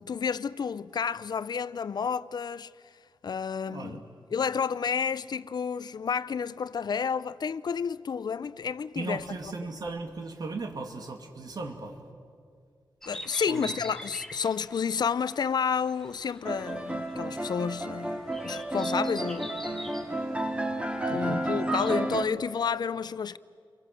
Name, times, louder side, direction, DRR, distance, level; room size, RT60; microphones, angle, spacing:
voice 1, 0.0-2.7 3.2-4.0 4.3-9.2 13.1-19.8 21.1-23.4, left 6 dB, 60° left, 0.6 m, -30 dB
voice 2, 3.7-4.1 8.9-12.0 13.5-13.7 18.3-18.4 21.1-21.4, right 3 dB, 55° right, 2.5 m, -37 dB
sound 1, 13.0-22.1, equal, 5° left, 1.8 m, -46 dB
sound 2, 16.5-22.2, right 1 dB, 15° right, 2.1 m, -31 dB
30.0 x 23.0 x 7.7 m
wide cardioid pair, 125°, 8 cm